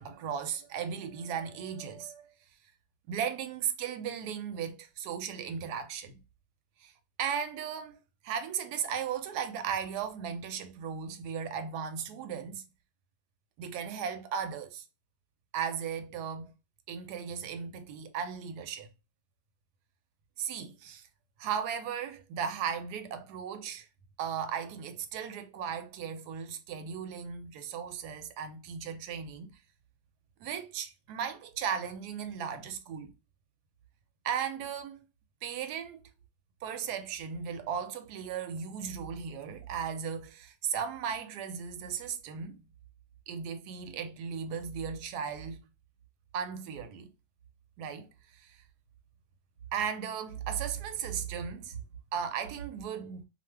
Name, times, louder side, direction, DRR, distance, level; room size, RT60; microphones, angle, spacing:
voice 1, 0.0-2.3 3.1-6.2 6.8-6.9 7.2-8.0 8.2-12.6 13.6-14.8 15.5-16.5 16.9-18.9 20.4-21.1 21.4-23.9 24.2-29.6 30.4-33.1 34.2-35.0 35.4-36.0 36.6-42.6 43.3-45.6 46.3-47.1 47.8-48.6 49.7-51.8 52.1-53.2, right 7 dB, 75° right, 1.1 m, -36 dB
2.6 x 2.3 x 3.2 m
omnidirectional pair, 1.9 m